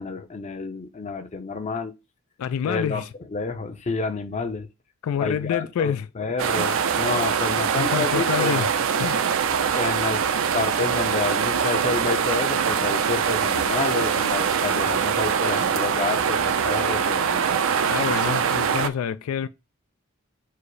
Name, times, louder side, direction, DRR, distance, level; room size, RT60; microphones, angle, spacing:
voice 1, 0.0-1.9 2.6-3.0 3.3-4.7 5.2-8.7 9.7-10.2 10.5-17.4, left 4 dB, 35° left, 0.5 m, -29 dB
voice 2, 2.4-3.1 5.0-6.1 7.8-8.7 8.9-9.2 17.9-19.5, left 8 dB, 85° left, 0.3 m, -27 dB
sound 1, 6.4-18.9, right 7 dB, 70° right, 0.5 m, -23 dB
4.7 x 2.0 x 4.7 m
head